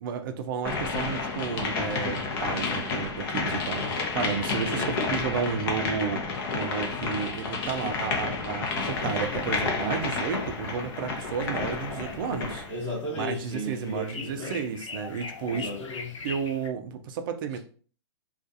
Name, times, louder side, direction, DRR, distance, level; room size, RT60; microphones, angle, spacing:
voice 1, 0.0-6.2 6.5-12.7 13.1-15.7 16.2-17.6, right 6 dB, 45° right, 0.4 m, -32 dB
sound 1, 0.6-12.7, left 4 dB, 50° left, 0.7 m, -30 dB
sound 2, 8.9-16.7, left 4 dB, 85° left, 0.5 m, -43 dB
voice 2, 12.7-14.6 15.5-16.2, equal, 10° left, 0.9 m, -34 dB
2.4 x 2.3 x 2.6 m
hypercardioid pair, 140°, 16 cm